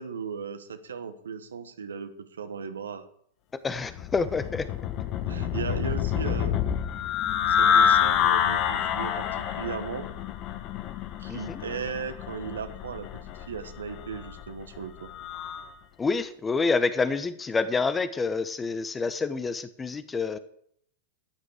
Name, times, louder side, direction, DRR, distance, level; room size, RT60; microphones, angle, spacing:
voice 1, 0.0-3.0 5.3-6.6 7.5-10.1 11.2-13.1 13.5-15.1, right 6 dB, 85° right, 9 dB, 1.4 m, -36 dB
voice 2, 3.6-4.7 11.3-11.6 16.0-20.4, left 4 dB, 15° left, 12 dB, 1.0 m, -28 dB
sound 1, 3.8-15.7, left 8 dB, 45° left, 1.2 m, -27 dB
13.0 x 9.8 x 5.0 m, 0.67 s
hypercardioid pair, 105°, 0 cm